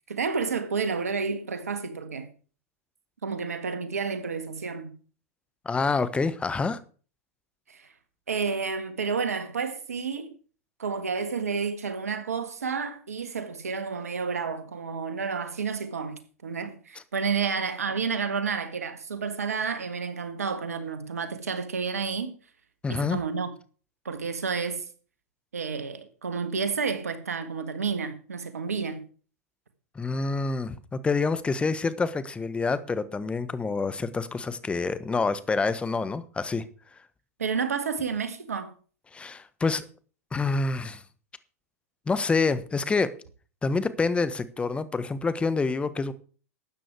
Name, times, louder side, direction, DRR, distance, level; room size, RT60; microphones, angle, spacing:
voice 1, 0.1-2.3 3.2-4.9 7.7-7.9 8.3-10.4 10.8-22.4 22.9-23.5 24.1-24.9 25.5-29.1 37.4-38.7, right 5 dB, 85° right, 1.8 m, -30 dB
voice 2, 5.6-6.8 22.8-23.2 29.9-36.6 39.1-39.9 40.3-41.0 42.1-43.1 43.6-46.1, left 4 dB, 15° left, 1.2 m, -27 dB
12.5 x 9.0 x 4.7 m
hypercardioid pair, 100°, 8 cm